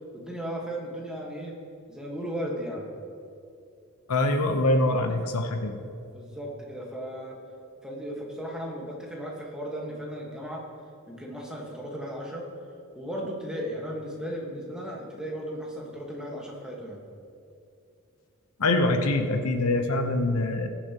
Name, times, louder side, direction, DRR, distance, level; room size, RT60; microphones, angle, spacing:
voice 1, 0.1-1.6 1.9-2.9 6.1-7.4 7.8-10.6 11.1-12.5 12.9-17.0, equal, 5° right, -2 dB, 1.5 m, -36 dB
voice 2, 4.1-5.8 18.6-20.7, left 2 dB, 80° left, 5 dB, 0.9 m, -24 dB
21.0 x 7.1 x 3.0 m, 2.6 s
head